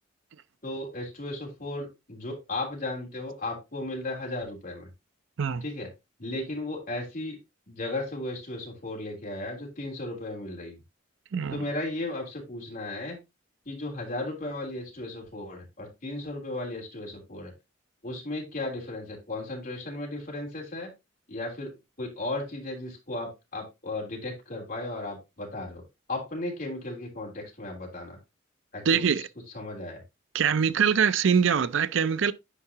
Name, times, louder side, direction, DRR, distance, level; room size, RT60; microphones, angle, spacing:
voice 1, 0.6-4.9 5.6-5.9 6.2-7.4 7.7-10.8 11.5-13.2 13.6-17.5 18.0-20.9 21.3-21.7 22.0-25.8 26.1-28.2 28.7-29.2 29.5-30.0, left 2 dB, 45° left, 3.3 m, -35 dB
voice 2, 11.3-11.6 28.8-29.2 30.3-32.3, right 7 dB, 70° right, 0.5 m, -23 dB
10.0 x 4.8 x 2.8 m
head